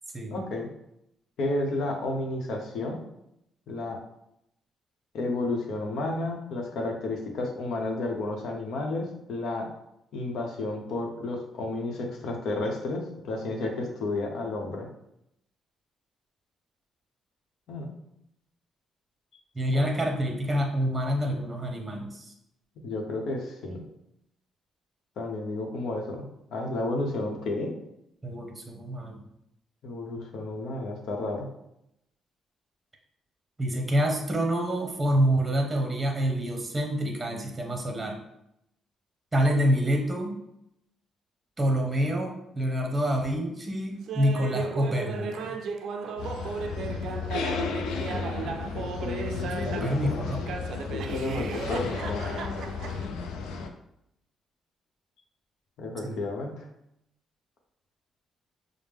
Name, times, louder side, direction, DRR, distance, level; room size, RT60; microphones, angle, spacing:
voice 1, 0.3-0.7 1.4-3.0 3.7-4.0 5.1-9.7 10.1-14.9 17.7-17.9 19.7-19.9 22.8-23.8 25.2-27.7 29.8-31.5 48.7-50.5 50.9-52.2 55.8-56.7, left 2 dB, 70° left, 1 dB, 0.9 m, -32 dB
voice 2, 19.5-22.3 28.2-29.2 33.6-38.2 39.3-40.4 41.6-45.6 49.4-50.5 56.0-56.2, equal, 20° right, 2 dB, 0.9 m, -27 dB
Laughter, 44.1-50.0 50.5-53.1, right 5 dB, 70° right, 0.4 m, -36 dB
sound 1, 46.2-53.7, left 5 dB, 90° left, 0.4 m, -33 dB
4.9 x 2.1 x 3.5 m, 0.79 s
cardioid pair, 90°, 0 cm